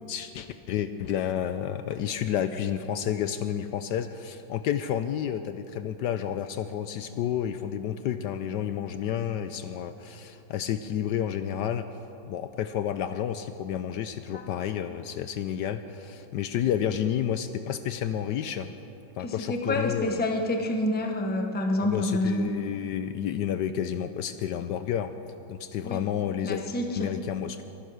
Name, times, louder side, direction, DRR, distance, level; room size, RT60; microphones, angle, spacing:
voice 1, 0.0-11.9 12.3-18.7 19.2-20.2 21.8-25.1 25.5-26.6 26.9-27.6, left 9 dB, 75° left, 10 dB, 1.1 m, -30 dB
voice 2, 19.2-22.5 25.8-26.0 26.4-27.1, left 1 dB, 5° left, 3 dB, 0.8 m, -28 dB
23.0 x 10.0 x 6.4 m, 3.0 s
omnidirectional pair, 2.1 m